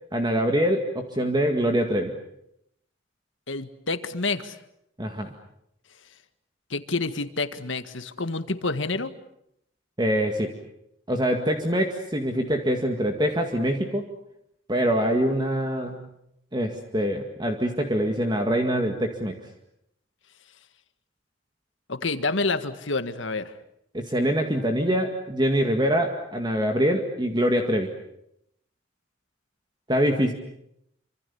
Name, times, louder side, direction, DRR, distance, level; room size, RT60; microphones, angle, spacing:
voice 1, 0.1-2.1 5.0-5.3 10.0-10.5 11.1-14.0 14.7-16.0 16.5-19.4 23.9-27.9 29.9-30.3, equal, 20° right, 4 dB, 2.0 m, -24 dB
voice 2, 3.5-4.6 6.7-9.1 21.9-23.5, left 3 dB, 70° left, 11 dB, 1.8 m, -28 dB
28.0 x 25.5 x 7.1 m, 0.77 s
head